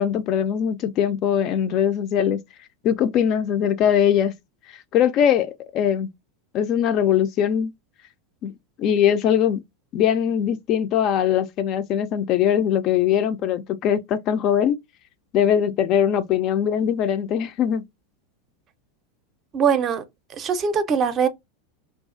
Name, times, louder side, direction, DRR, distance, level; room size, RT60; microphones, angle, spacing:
voice 1, 0.0-2.4 2.8-4.3 4.9-6.1 6.5-7.7 8.4-8.5 8.8-9.6 9.9-14.8 15.3-17.8, left 9 dB, 45° left, 0.3 m, -21 dB
voice 2, 19.5-20.0 20.4-21.3, right 6 dB, 35° right, 0.5 m, -21 dB
2.3 x 2.3 x 2.5 m
hypercardioid pair, 90°, 0 cm